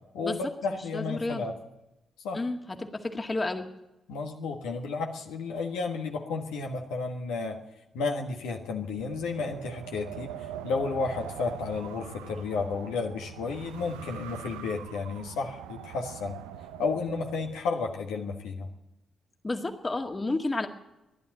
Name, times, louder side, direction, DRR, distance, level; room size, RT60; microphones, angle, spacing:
voice 1, 0.1-1.5 2.2-2.4 4.1-7.6 7.9-16.4 16.8-18.7, left 4 dB, 80° left, 1 dB, 1.5 m, -32 dB
voice 2, 0.9-1.5 2.3-3.7 19.4-20.7, left 2 dB, 30° left, 5 dB, 2.0 m, -31 dB
Wind, 8.9-17.6, right 10 dB, 85° right, 0.6 m, -42 dB
14.0 x 11.0 x 8.9 m, 0.95 s
hypercardioid pair, 40°, 0 cm